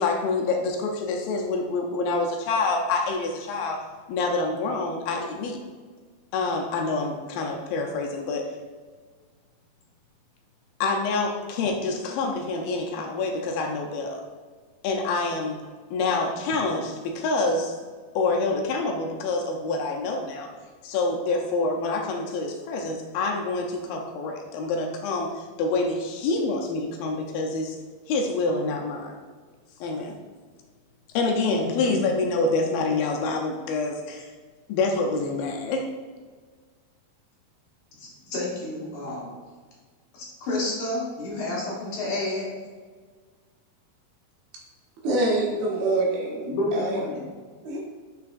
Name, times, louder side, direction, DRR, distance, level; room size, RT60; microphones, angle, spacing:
voice 1, 0.0-3.8 4.1-5.6 6.3-8.6 10.8-14.2 14.8-15.6 15.9-17.7 18.2-20.5 20.8-27.8 28.1-29.2 29.8-30.2 31.1-34.3 34.7-35.9, left 3 dB, 80° left, 1 dB, 2.4 m, -27 dB
voice 2, 31.6-32.0 38.0-39.3 40.1-42.5 46.5-47.2, left 2 dB, 60° left, -5 dB, 2.5 m, -30 dB
voice 3, 45.0-47.0 47.6-47.8, right 2 dB, 80° right, -3 dB, 3.1 m, -25 dB
6.7 x 6.0 x 2.5 m, 1.5 s
omnidirectional pair, 4.3 m